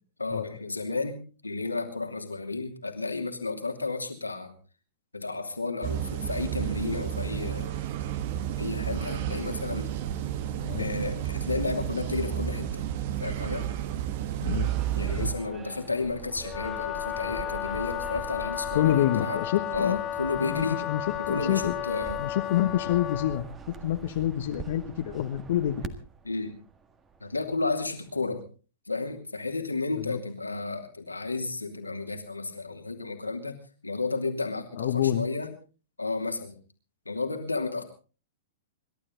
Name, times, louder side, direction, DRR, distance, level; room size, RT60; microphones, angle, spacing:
voice 1, 0.2-4.5 5.1-7.7 8.6-9.9 10.8-12.8 13.2-13.7 14.9-19.4 19.7-20.8 21.2-22.2 26.2-26.5 27.2-28.4 28.9-33.6 33.8-35.5 36.0-36.6 37.0-37.8, left 3 dB, 90° left, 5 dB, 2.7 m, -32 dB
sound 1, 5.8-15.3, right 11 dB, 50° right, 1.4 m, -31 dB
sound 2, 14.6-28.2, right 6 dB, 20° right, 1.7 m, -44 dB
Wind instrument woodwind instrument, 16.4-23.4, left 13 dB, 30° left, 1.4 m, -33 dB
voice 2, 18.7-20.0 20.4-21.0 21.3-21.7 22.2-23.5 23.8-25.9 30.1-30.2 34.8-35.3, left 12 dB, 60° left, 5 dB, 1.3 m, -27 dB
27.0 x 12.0 x 3.9 m, 0.37 s
figure-of-eight pair, 105°, 0 cm